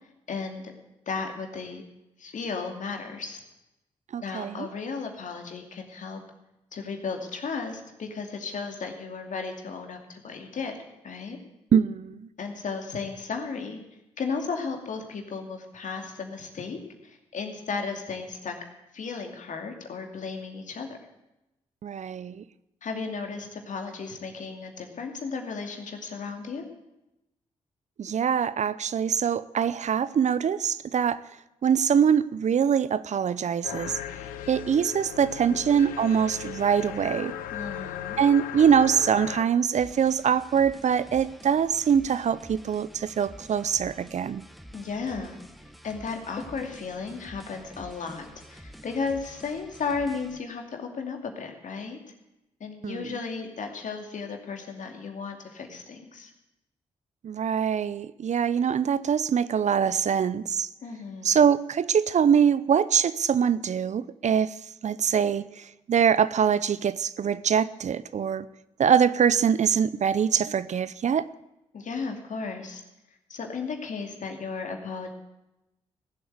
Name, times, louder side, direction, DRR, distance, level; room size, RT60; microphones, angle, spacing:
voice 1, 0.3-0.7 1.1-1.8 2.2-3.4 4.2-6.2 6.7-11.4 12.4-13.8 14.2-18.6 18.9-21.0 22.8-26.6 37.5-38.2 44.7-45.4 45.8-52.0 52.6-56.3 60.8-61.3 71.7-72.8 73.3-75.1, left 4 dB, 65° left, 4 dB, 2.6 m, -34 dB
voice 2, 4.1-4.7 11.7-12.3 21.8-22.4 28.0-31.2 31.6-34.0 34.5-37.3 38.2-44.4 52.8-53.2 57.2-60.7 61.2-68.5 68.8-71.3, right 7 dB, 55° right, 17 dB, 0.6 m, -23 dB
sound 1, 33.6-39.4, left 10 dB, 90° left, 0.7 m, -37 dB
sound 2, 39.7-50.4, equal, ahead, 1.2 m, -48 dB
16.0 x 7.8 x 9.5 m, 0.94 s
supercardioid pair, 45°, 14 cm